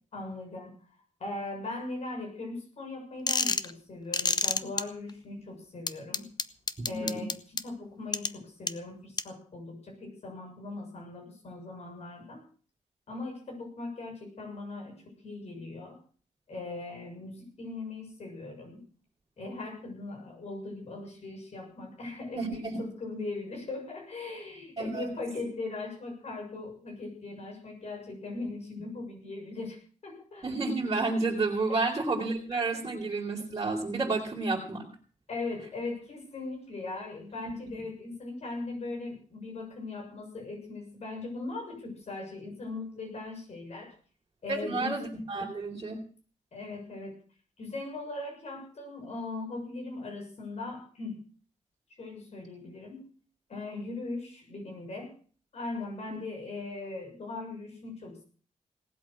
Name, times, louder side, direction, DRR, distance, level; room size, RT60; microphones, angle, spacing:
voice 1, 0.1-0.8 1.2-6.3 6.9-12.4 13.1-16.0 16.5-18.8 19.4-29.8 30.0-30.5 32.7-32.8 35.3-43.9 44.4-45.2 45.9-46.0 46.5-47.2 47.6-51.2 52.0-53.1 53.5-55.1 55.5-58.2, left 3 dB, 60° left, 1 dB, 6.9 m, -39 dB
sound 1, 3.3-3.7 4.1-4.8 5.9-7.6 8.1-8.3 8.7-8.8 9.2-9.3, left 4 dB, 35° left, 0.9 m, -27 dB
voice 2, 6.8-7.2 22.4-22.8 24.8-25.1 30.4-34.9 44.5-46.0 56.1-56.2, right 3 dB, 30° right, -4 dB, 4.6 m, -31 dB
18.5 x 8.5 x 7.8 m, 0.43 s
wide cardioid pair, 115°, 13 cm